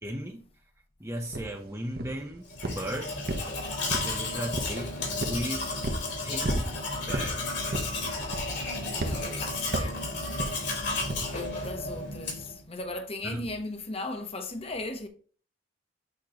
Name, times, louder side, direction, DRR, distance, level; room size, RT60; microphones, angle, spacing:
voice 1, 0.0-0.4 1.0-3.1 4.0-5.7 6.2-6.7 7.1-7.6 13.2-13.5, equal, 15° right, 0.7 m, -36 dB
sound 1, 1.3-1.5 2.0-2.3 2.6-2.9 3.3-4.2 4.5-4.8 5.2-5.4 5.8-6.1 6.4-6.7 7.1-7.3 7.7-8.0 8.3-8.6 9.0-9.2 9.7-10.0 10.4-10.6 11.1-11.3, right 1 dB, 55° right, 1.0 m, -31 dB
Domestic sounds home sounds, 2.5-12.6, left 2 dB, 65° left, 2.8 m, -33 dB
voice 2, 8.9-10.5 11.3-15.1, left 2 dB, 30° left, 1.0 m, -37 dB
8.6 x 3.0 x 5.0 m
head